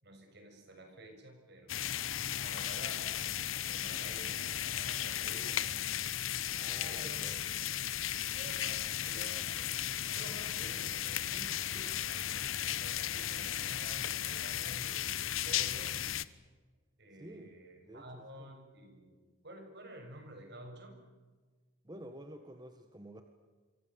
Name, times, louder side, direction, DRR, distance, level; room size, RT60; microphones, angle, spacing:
voice 1, 0.0-3.2 3.6-5.6 6.8-7.3 8.3-9.7 10.1-16.0 17.0-19.1 19.4-21.0, right 1 dB, 55° right, 5 dB, 6.7 m, -51 dB
sound 1, 1.7-16.2, left 11 dB, 75° left, 1.0 m, -35 dB
voice 2, 6.6-7.5 17.2-17.6 17.8-18.5 21.8-23.2, right 1 dB, 20° right, 6 dB, 1.6 m, -50 dB
27.0 x 24.5 x 7.5 m, 1.4 s
head